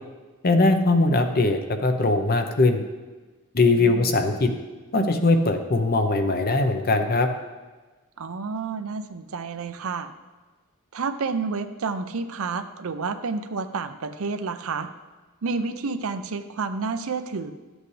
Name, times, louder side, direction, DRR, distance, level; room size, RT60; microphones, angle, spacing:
voice 1, 0.4-2.8 3.5-4.5 4.9-7.3, left 2 dB, 45° left, 6 dB, 0.8 m, -20 dB
voice 2, 3.8-4.2 8.2-10.1 10.9-14.9 15.4-17.5, right 4 dB, 70° right, 10 dB, 0.6 m, -30 dB
12.5 x 8.1 x 3.3 m, 1.3 s
head